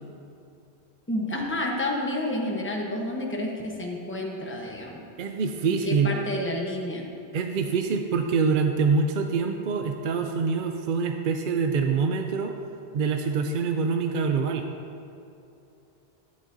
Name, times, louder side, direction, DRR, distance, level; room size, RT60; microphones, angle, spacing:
voice 1, 1.1-5.0 5.6-7.0, left 1 dB, 10° left, -1 dB, 1.0 m, -30 dB
voice 2, 5.2-6.1 7.3-12.5 12.9-14.7, right 5 dB, 60° right, 5 dB, 0.7 m, -25 dB
12.0 x 10.5 x 2.7 m, 2.7 s
omnidirectional pair, 1.0 m